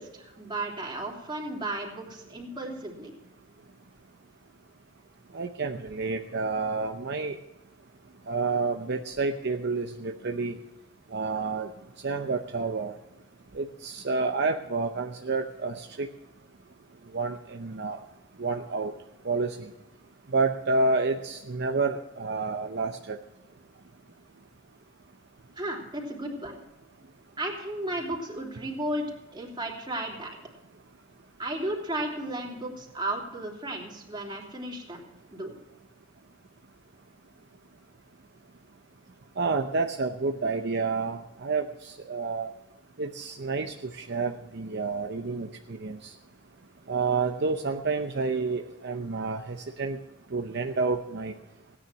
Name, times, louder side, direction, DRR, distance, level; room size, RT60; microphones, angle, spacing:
voice 1, 0.0-3.1 25.6-26.6 27.4-30.4 31.4-35.0 35.3-35.5, right 1 dB, 25° right, 0 dB, 3.1 m, -34 dB
voice 2, 5.3-7.4 8.3-10.6 11.1-11.7 12.0-13.0 13.5-16.1 17.1-18.0 18.4-18.9 19.2-19.6 20.3-23.2 39.4-42.5 43.0-46.1 46.9-50.0 50.3-51.3, right 4 dB, 55° right, 4 dB, 0.7 m, -29 dB
17.0 x 9.9 x 6.0 m, 0.98 s
head